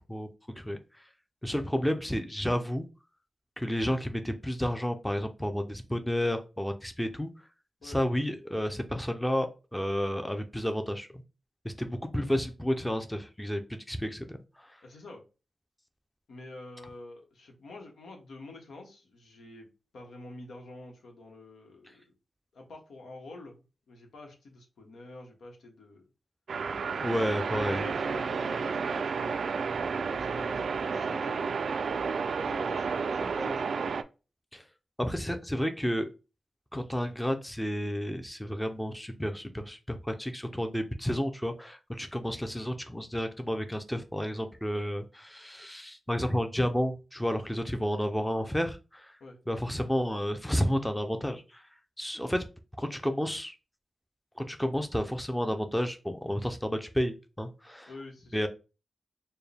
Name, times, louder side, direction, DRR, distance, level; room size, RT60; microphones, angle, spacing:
voice 1, 1.4-2.9 3.6-7.3 7.8-9.5 9.7-11.1 11.6-14.4 27.0-27.8 34.5-34.6 35.0-36.1 36.7-49.1 49.5-51.6 52.0-52.4 52.8-53.5 54.4-57.9 58.3-58.5, equal, 5° left, 6 dB, 0.5 m, -31 dB
voice 2, 14.8-15.2 16.3-19.7 19.9-22.1 22.5-26.0 27.3-29.4 30.2-31.6 32.1-33.7 49.2-49.4 57.9-58.5, left 2 dB, 90° left, 2 dB, 1.0 m, -47 dB
sound 1, 26.5-34.0, right 5 dB, 70° right, 0.3 m, -31 dB
4.5 x 2.2 x 3.4 m, 0.31 s
cardioid pair, 75°, 0 cm